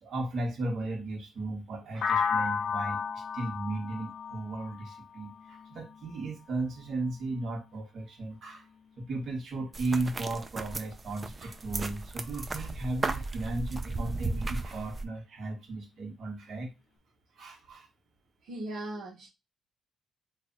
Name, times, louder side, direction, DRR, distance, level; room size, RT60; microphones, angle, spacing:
voice 1, 0.0-8.7 9.0-16.7 17.4-17.9, right 2 dB, 65° right, 1.4 m, -35 dB
sound 1, 2.0-5.9, left 6 dB, 55° left, 0.4 m, -32 dB
sound 2, 9.7-15.0, right 3 dB, 25° right, 0.5 m, -35 dB
voice 2, 18.4-19.3, right 1 dB, 85° right, 1.0 m, -38 dB
3.2 x 2.3 x 3.9 m
cardioid pair, 90°, 0 cm